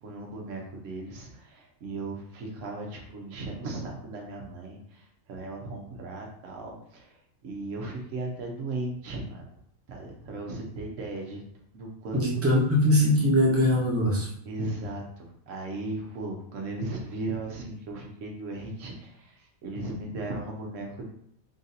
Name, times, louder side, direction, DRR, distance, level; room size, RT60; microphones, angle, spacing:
voice 1, 0.0-9.5 9.9-11.4 11.7-12.2 14.5-21.1, right 2 dB, 80° right, 0 dB, 1.2 m, -37 dB
voice 2, 12.1-14.3, left 1 dB, 10° right, -4 dB, 0.9 m, -22 dB
3.7 x 2.6 x 4.0 m, 0.69 s
omnidirectional pair, 1.3 m